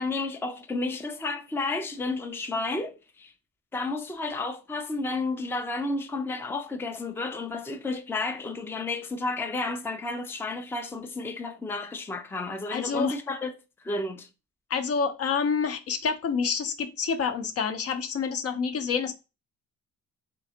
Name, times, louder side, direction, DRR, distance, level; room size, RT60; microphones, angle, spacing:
voice 1, 0.0-3.3 3.7-13.5 13.8-14.3, left 3 dB, 10° left, 0.5 m, -31 dB
voice 2, 12.7-13.2 14.7-19.1, left 5 dB, 50° left, 0.7 m, -28 dB
3.7 x 3.3 x 2.8 m
cardioid pair, 90°, 30 cm